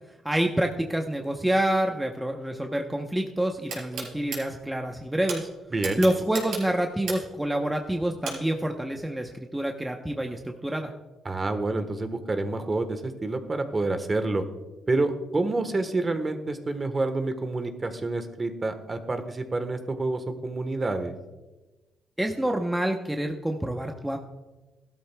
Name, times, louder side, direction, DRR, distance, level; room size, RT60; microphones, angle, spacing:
voice 1, 0.2-5.5 6.0-10.9 22.2-24.2, right 1 dB, 5° right, 3 dB, 0.8 m, -27 dB
sound 1, 3.7-4.4 5.3-5.4 5.8-7.4 8.2-8.4, right 4 dB, 75° right, 3.9 m, -33 dB
voice 2, 5.7-6.0 11.2-14.4 14.9-21.1, right 2 dB, 30° right, 8 dB, 1.2 m, -28 dB
15.5 x 12.5 x 2.3 m, 1.1 s
cardioid pair, 90°, 0 cm